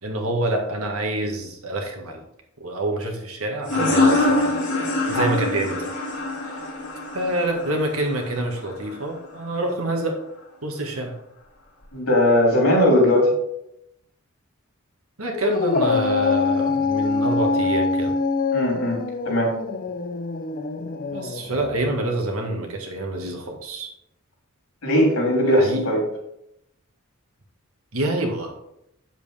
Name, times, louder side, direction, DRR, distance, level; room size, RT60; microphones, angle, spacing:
voice 1, 0.0-2.2 2.6-4.5 5.1-5.9 6.4-6.6 7.1-10.2 10.6-11.1 15.2-18.1 21.1-23.9 25.5-25.9 27.9-28.5, right 1 dB, 85° right, 2 dB, 1.9 m, -27 dB
sound 1, 3.6-9.0, left 2 dB, 60° left, 3.6 m, -24 dB
voice 2, 11.9-13.3 18.5-19.6 24.8-26.0, left 1 dB, 75° left, -2 dB, 3.7 m, -19 dB
Dog, 15.3-22.0, left 4 dB, 40° left, 0.7 m, -24 dB
8.2 x 7.5 x 3.5 m, 0.79 s
head